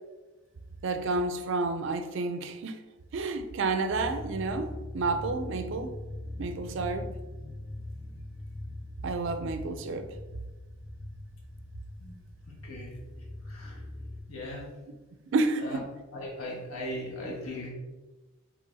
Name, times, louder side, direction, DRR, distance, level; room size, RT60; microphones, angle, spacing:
voice 1, 0.8-2.8 3.1-5.9 6.4-7.1 9.0-10.1 15.3-15.8, right 3 dB, 55° right, 0.4 m, -30 dB
sound 1, 3.9-14.2, left 1 dB, 15° left, 0.7 m, -41 dB
voice 2, 12.6-13.8 14.3-14.7 15.6-15.8 16.1-17.7, left 1 dB, 80° left, 1.3 m, -39 dB
5.3 x 3.3 x 2.6 m
head